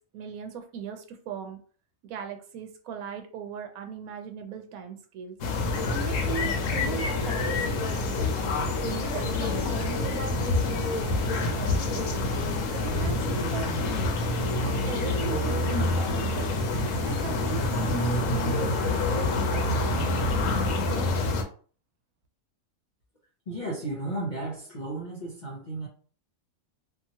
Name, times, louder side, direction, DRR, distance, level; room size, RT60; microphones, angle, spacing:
voice 1, 0.1-1.6 2.0-5.4 5.9-8.2 8.8-12.2 12.7-13.7 14.6-16.6 17.0-20.0 20.8-21.4, right 5 dB, 80° right, 1.0 m, -38 dB
sound 1, 5.4-21.4, left 2 dB, 70° left, 0.9 m, -27 dB
voice 2, 23.5-25.9, right 2 dB, 45° left, 0.7 m, -34 dB
2.8 x 2.4 x 2.7 m
omnidirectional pair, 1.5 m